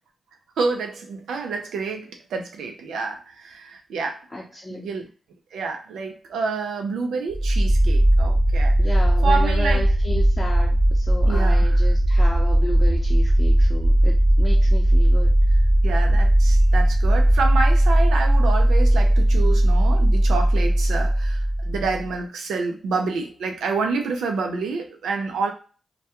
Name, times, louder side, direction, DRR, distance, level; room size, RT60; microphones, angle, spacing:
voice 1, 0.6-4.2 4.7-5.1 5.5-9.8 11.3-11.9 15.8-25.5, right 4 dB, 90° right, 4 dB, 0.4 m, -28 dB
voice 2, 4.3-4.8 8.8-15.6, left 2 dB, 25° left, -4 dB, 0.7 m, -33 dB
sound 1, 7.3-22.1, right 1 dB, 30° right, 0.8 m, -18 dB
2.2 x 2.2 x 2.8 m, 0.36 s
supercardioid pair, 45°, 0 cm